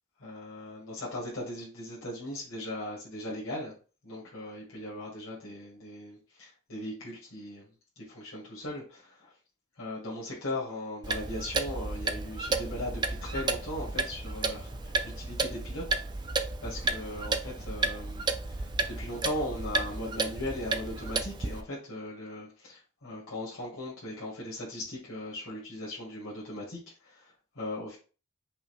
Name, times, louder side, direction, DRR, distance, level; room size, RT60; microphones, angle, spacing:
voice 1, 0.2-3.7 4.0-7.7 8.0-9.3 9.8-16.3 16.6-28.0, left 1 dB, 80° left, -6 dB, 1.9 m, -38 dB
Clock, 11.0-21.6, right 3 dB, 20° right, 0.3 m, -32 dB
5.5 x 2.8 x 3.3 m, 0.36 s
head